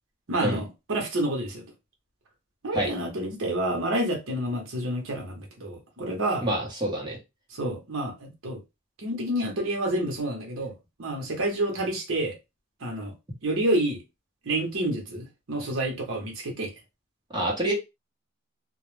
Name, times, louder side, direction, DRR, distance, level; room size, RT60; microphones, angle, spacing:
voice 1, 0.3-1.6 2.6-6.5 7.5-8.6 9.0-10.7 11.0-12.4 12.8-13.1 13.4-14.0 14.4-16.7, right 1 dB, 70° right, 0.8 m, -29 dB
voice 2, 6.4-7.2 17.3-17.7, right 1 dB, 20° right, 0.9 m, -27 dB
2.2 x 2.0 x 3.0 m
head